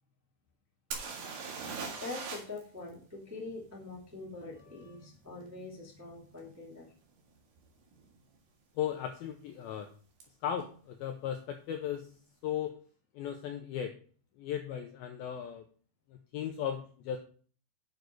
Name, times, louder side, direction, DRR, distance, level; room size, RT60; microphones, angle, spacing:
sound 1, 0.9-2.6 2.9-3.0 6.4-6.5 7.1-7.3 7.6-8.2 10.2-10.3 10.6-10.7, right 5 dB, 60° right, 3.3 m, -40 dB
voice 1, 2.0-6.9, left 3 dB, 5° right, -3 dB, 1.3 m, -44 dB
voice 2, 8.8-9.9 10.4-12.1 12.4-12.7 13.2-13.9 14.4-15.6 16.3-17.2, left 9 dB, 80° left, 4 dB, 2.2 m, -36 dB
9.3 x 6.5 x 4.7 m, 0.43 s
omnidirectional pair, 5.2 m